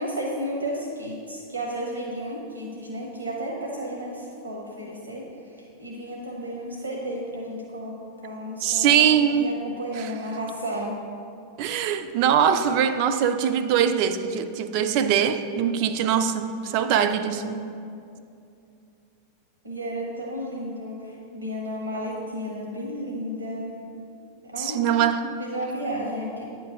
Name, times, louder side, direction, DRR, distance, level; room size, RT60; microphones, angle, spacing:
voice 1, 0.0-8.0 8.2-11.0 19.6-23.8 24.4-25.0 25.4-26.4, equal, 75° right, 0.9 m, -33 dB
voice 2, 8.6-9.5 11.6-17.7 24.6-25.3, right 8 dB, 45° right, 0.4 m, -22 dB
9.3 x 3.2 x 6.3 m
figure-of-eight pair, 90°, 0 cm